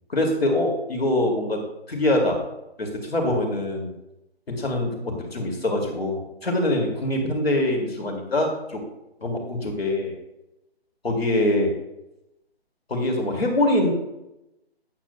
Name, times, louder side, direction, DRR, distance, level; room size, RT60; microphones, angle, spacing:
voice 1, 0.1-1.6 1.9-2.4 2.8-3.9 4.5-8.8 9.2-10.1 11.0-11.7 12.9-13.9, left 1 dB, 70° left, 2 dB, 2.4 m, -24 dB
13.0 x 9.7 x 2.2 m, 0.90 s
figure-of-eight pair, 145°, 32 cm